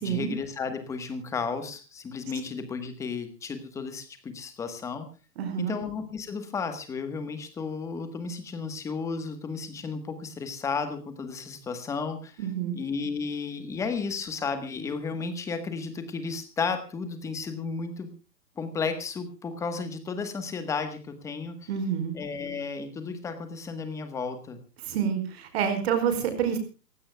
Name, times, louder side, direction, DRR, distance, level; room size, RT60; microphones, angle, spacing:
voice 1, 0.0-5.1 5.6-12.5 12.7-18.1 18.6-21.7 22.1-24.6, left 5 dB, 5° left, 9 dB, 1.2 m, -33 dB
voice 2, 5.4-5.8 12.4-12.8 21.7-22.1 24.8-26.6, right 8 dB, 40° right, 9 dB, 5.0 m, -28 dB
28.5 x 16.0 x 2.2 m, 0.33 s
hypercardioid pair, 165°, 49 cm